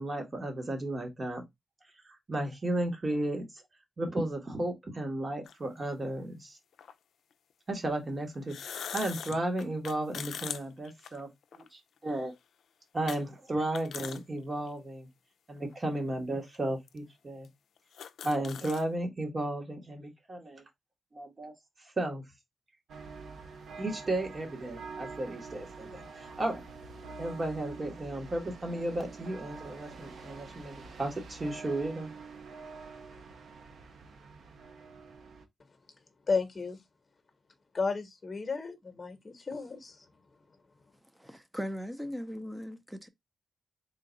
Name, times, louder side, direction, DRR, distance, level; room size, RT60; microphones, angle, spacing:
voice 1, 0.0-1.4 2.0-3.4 4.0-6.6 7.7-11.3 11.7-12.3 12.9-15.1 15.5-17.5 18.2-20.6 21.1-21.5 22.0-22.2 23.8-26.6 27.2-32.1, right 1 dB, 35° right, 1.3 m, -34 dB
sound 1, 5.5-5.6 6.8-6.9 8.3-11.7 12.1-12.2 13.1-13.2 13.6-14.2 14.7-14.8 15.6-15.7 16.5-16.6 16.9-17.0 17.4-17.5 17.8-18.8, left 8 dB, 90° left, 0.3 m, -41 dB
sound 2, 22.9-35.5, right 4 dB, 80° right, 0.7 m, -46 dB
voice 2, 36.3-36.8 37.7-40.0, left 4 dB, 40° left, 0.9 m, -33 dB
voice 3, 41.2-43.1, equal, 5° right, 0.6 m, -39 dB
3.8 x 2.4 x 3.9 m
cardioid pair, 90°, 0 cm